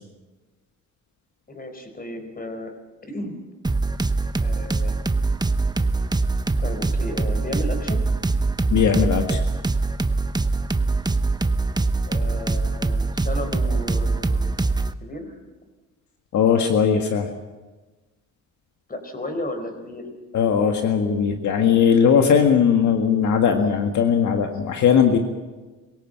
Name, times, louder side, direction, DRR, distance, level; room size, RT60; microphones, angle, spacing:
voice 1, 1.5-2.7 3.1-3.4 4.4-5.0 6.6-8.0 12.0-14.6 15.0-15.3 18.9-20.1, left 1 dB, 30° left, 7 dB, 4.5 m, -33 dB
sound 1, 3.6-14.9, right 3 dB, 15° right, 1.0 m, -23 dB
voice 2, 8.7-9.4 16.3-17.3 20.3-25.2, left 7 dB, 70° left, 4 dB, 1.8 m, -19 dB
23.5 x 17.0 x 7.9 m, 1.2 s
cardioid pair, 90°, 30 cm